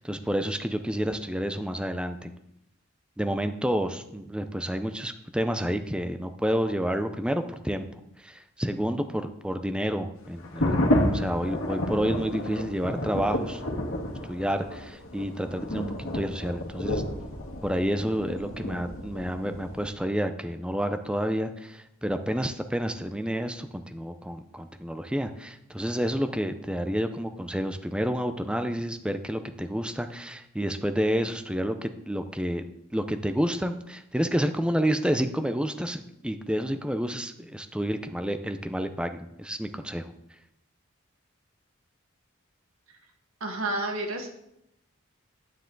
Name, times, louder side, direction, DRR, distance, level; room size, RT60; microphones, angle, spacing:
voice 1, 0.0-2.3 3.2-7.9 8.2-13.6 14.3-15.8 16.1-17.0 17.6-32.6 32.9-40.1, equal, 5° right, 8 dB, 0.5 m, -29 dB
sound 1, 10.4-19.8, left 1 dB, 80° left, 1.7 m, -30 dB
voice 2, 43.4-44.4, right 2 dB, 80° right, 3 dB, 1.7 m, -30 dB
9.8 x 9.1 x 3.9 m, 0.80 s
head